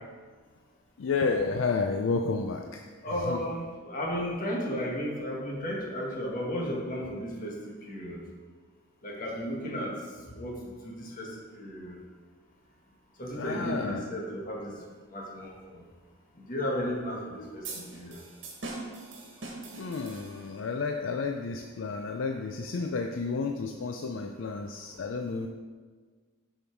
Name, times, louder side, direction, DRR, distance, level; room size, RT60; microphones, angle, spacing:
voice 1, 1.0-2.9 3.2-3.4 13.3-14.1 19.8-25.5, left 4 dB, 70° left, 4 dB, 0.4 m, -31 dB
voice 2, 3.0-8.2 9.0-9.9 10.4-10.5 10.8-11.3 11.6-12.0 13.2-14.7 15.1-15.8 16.4-18.2, equal, 45° left, -2 dB, 1.6 m, -34 dB
sound 1, 17.6-20.7, right 3 dB, 60° right, 1.6 m, -42 dB
7.1 x 5.6 x 4.5 m, 1.5 s
head